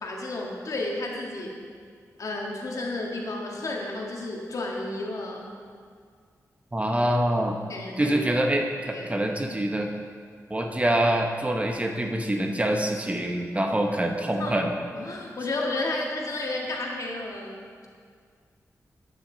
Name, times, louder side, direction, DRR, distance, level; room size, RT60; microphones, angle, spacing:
voice 1, 0.0-1.6 2.2-5.5 7.7-8.2 8.9-9.1 14.4-14.6 15.0-17.9, left 2 dB, 65° left, -1 dB, 1.8 m, -32 dB
voice 2, 6.7-7.6 8.0-9.9 10.5-14.7, right 1 dB, 20° right, 2 dB, 1.1 m, -25 dB
11.5 x 9.3 x 4.0 m, 2.1 s
cardioid pair, 70°, 6 cm